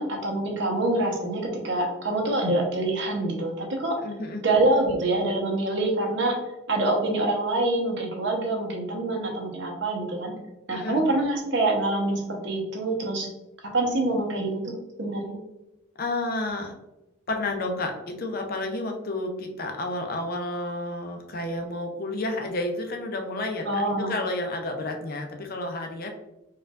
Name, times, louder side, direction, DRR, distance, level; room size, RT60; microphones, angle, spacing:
voice 1, 0.0-4.0 4.4-6.4 6.7-10.3 10.7-13.3 13.7-14.6 15.0-15.3 23.7-24.1, right 2 dB, 60° right, 1 dB, 0.8 m, -25 dB
voice 2, 4.0-4.4 10.7-11.1 16.0-16.7 17.3-26.1, left 2 dB, 45° left, 3 dB, 0.5 m, -31 dB
4.4 x 2.3 x 2.4 m, 0.96 s
head